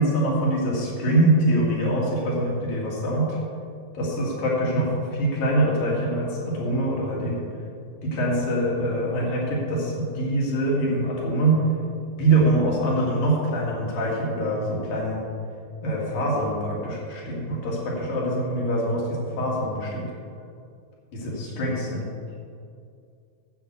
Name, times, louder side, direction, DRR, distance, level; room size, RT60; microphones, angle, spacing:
voice 1, 0.0-3.4 3.9-7.5 8.0-11.6 12.2-15.2 15.8-20.1 21.1-22.1, right 1 dB, 85° left, -4 dB, 4.2 m, -24 dB
10.5 x 8.1 x 7.0 m, 2.4 s
omnidirectional pair, 3.9 m